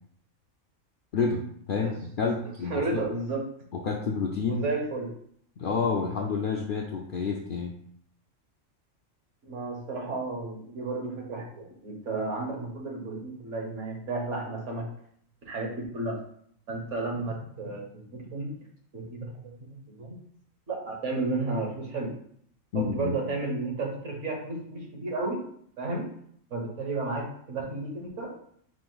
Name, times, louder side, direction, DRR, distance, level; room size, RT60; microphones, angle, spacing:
voice 1, 1.7-3.0 3.7-4.7 5.6-7.7 22.7-23.1, left 5 dB, 65° left, 1 dB, 0.5 m, -29 dB
voice 2, 2.7-3.4 4.5-5.1 9.5-14.9 15.5-16.2 16.7-18.5 18.9-20.2 20.7-22.1 22.7-25.5 25.8-26.1 26.5-28.3, right 3 dB, 65° right, 1 dB, 1.4 m, -32 dB
5.0 x 2.5 x 3.8 m, 0.64 s
omnidirectional pair, 1.4 m